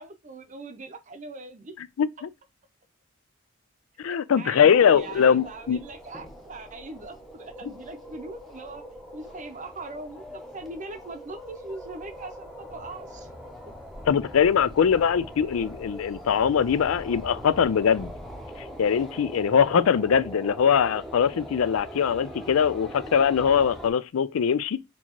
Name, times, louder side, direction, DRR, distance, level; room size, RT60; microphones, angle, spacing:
voice 1, 0.0-1.8 4.4-8.9 9.1-13.3 13.6-13.7, right 2 dB, 40° right, 0.6 m, -41 dB
voice 2, 1.8-2.3 4.0-5.8 14.1-18.1 18.8-24.8, left 7 dB, 85° left, 0.4 m, -22 dB
sound 1, 4.6-23.9, equal, ahead, 0.7 m, -42 dB
4.5 x 2.9 x 2.9 m
head